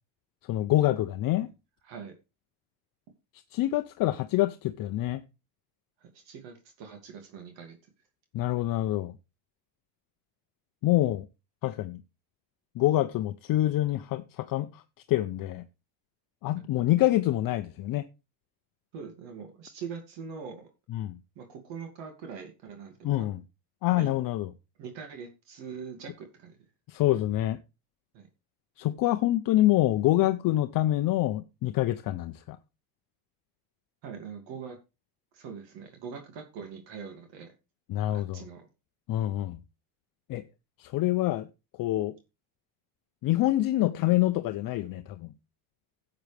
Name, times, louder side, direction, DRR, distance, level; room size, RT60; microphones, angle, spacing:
voice 1, 0.5-1.5 3.5-5.2 8.3-9.1 10.8-11.2 11.6-12.0 12.8-14.8 15.1-15.6 16.4-18.0 20.9-21.2 23.0-23.4 23.8-24.5 26.9-27.6 28.8-32.6 37.9-38.5 39.1-39.6 40.3-40.4 40.8-41.5 41.8-42.1 43.2-45.3, left 15 dB, 45° left, 0.7 m, -26 dB
voice 2, 6.1-7.8 16.5-16.6 18.9-20.7 21.4-23.3 23.9-24.1 24.8-26.6 28.1-28.3 34.0-34.8 35.3-37.5 38.1-38.7, right 6 dB, 65° right, 2.6 m, -42 dB
12.0 x 7.9 x 3.4 m
supercardioid pair, 120°, 48 cm